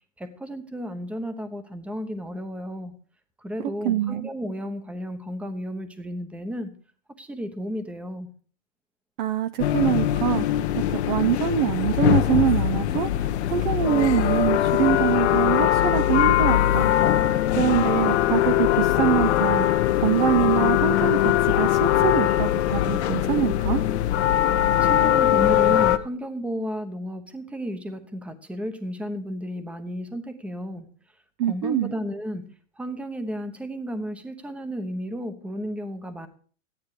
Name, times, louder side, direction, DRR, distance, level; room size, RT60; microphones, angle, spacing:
voice 1, 0.2-2.9 3.4-6.8 7.2-8.3 24.8-30.9 31.5-36.3, equal, 5° right, 9 dB, 0.9 m, -33 dB
voice 2, 3.8-4.3 9.2-13.1 13.5-16.9 17.6-23.8 31.4-31.9, right 10 dB, 40° right, 10 dB, 0.6 m, -24 dB
sound 1, 9.6-26.0, left 12 dB, 60° left, 1.0 m, -21 dB
13.0 x 9.9 x 4.9 m, 0.44 s
hypercardioid pair, 130°, 38 cm